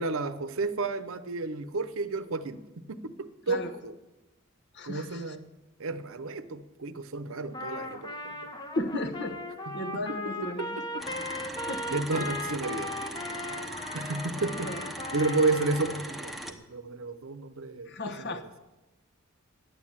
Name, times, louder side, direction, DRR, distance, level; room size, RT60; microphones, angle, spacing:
voice 1, 0.0-2.6 2.9-3.9 4.8-5.5 5.8-8.5 10.6-11.0 11.9-13.0 13.9-14.7 15.1-18.0, right 3 dB, 70° right, 12 dB, 0.8 m, -32 dB
voice 2, 4.7-5.4 8.7-9.4 9.7-10.8 11.6-11.8 14.6-14.9 17.8-18.5, left 1 dB, 55° left, 8 dB, 1.2 m, -35 dB
Trumpet, 7.5-16.1, left 1 dB, 20° left, 1.1 m, -38 dB
sound 1, 11.0-16.5, right 1 dB, ahead, 0.9 m, -40 dB
11.0 x 8.6 x 8.7 m, 1.1 s
head